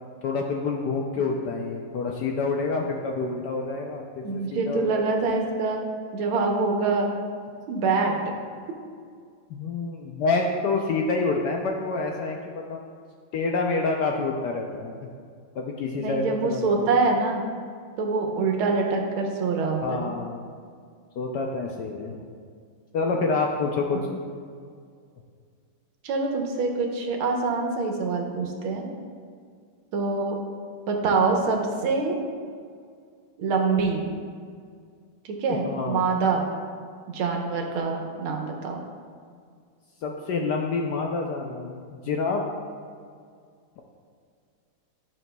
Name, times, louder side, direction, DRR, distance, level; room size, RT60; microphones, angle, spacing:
voice 1, 0.2-5.0 9.5-12.8 13.3-14.9 15.5-16.9 19.8-20.5 21.2-22.2 22.9-24.2 35.5-36.0 40.0-42.4, left 3 dB, 75° left, 1 dB, 1.0 m, -27 dB
voice 2, 4.2-5.8 6.1-7.1 7.7-8.2 16.0-17.4 18.0-20.2 26.0-28.9 29.9-30.4 30.9-32.2 33.4-34.0 35.2-36.5 37.1-38.8, right 4 dB, 85° right, 1 dB, 1.7 m, -25 dB
12.0 x 6.0 x 2.2 m, 2.1 s
omnidirectional pair, 2.3 m